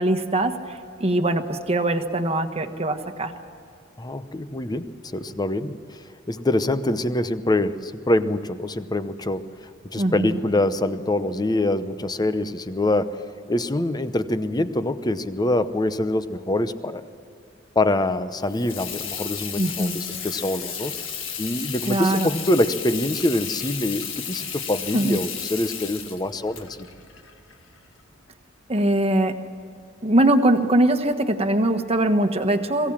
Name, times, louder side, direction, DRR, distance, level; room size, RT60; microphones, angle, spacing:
voice 1, 0.0-3.3 10.0-10.4 19.6-20.0 21.9-22.3 24.9-25.2 28.7-29.3 30.0-32.9, right 1 dB, 30° right, 7 dB, 1.3 m, -22 dB
voice 2, 4.0-5.8 6.3-9.5 9.8-13.2 13.5-17.1 17.8-20.9 21.4-26.9, left 1 dB, 20° left, 12 dB, 0.8 m, -25 dB
Water tap faucet / Sink (filling or washing), 18.4-28.0, left 7 dB, 90° left, 1.8 m, -33 dB
22.0 x 16.5 x 7.3 m, 2.6 s
head